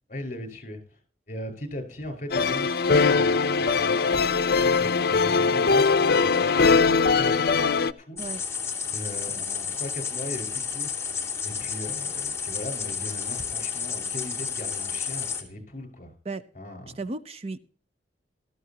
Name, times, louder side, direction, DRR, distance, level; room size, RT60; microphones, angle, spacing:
voice 1, 0.1-1.0 1.3-4.3 4.6-8.2 8.9-11.1 11.4-16.1 16.5-17.0, left 1 dB, 45° left, 5.4 m, -38 dB
sound 1, 2.3-7.9, left 4 dB, 60° left, 0.7 m, -21 dB
sound 2, 8.2-15.4, left 6 dB, 15° left, 2.7 m, -31 dB
voice 2, 17.0-17.6, right 3 dB, 35° right, 0.6 m, -34 dB
18.0 x 14.0 x 2.9 m
head